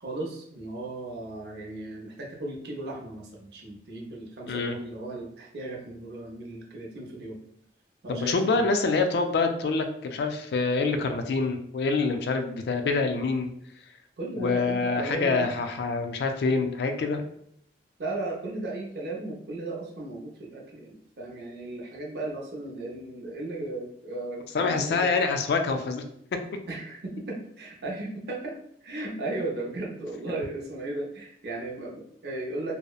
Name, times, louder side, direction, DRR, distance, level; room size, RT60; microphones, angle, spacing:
voice 1, 0.0-7.4 8.0-8.8 14.2-15.5 18.0-25.1 26.7-32.7, right 2 dB, 65° right, -1 dB, 0.6 m, -36 dB
voice 2, 8.1-13.5 14.4-17.2 24.5-26.0, left 4 dB, 65° left, 6 dB, 0.3 m, -26 dB
2.7 x 2.0 x 2.3 m, 0.69 s
head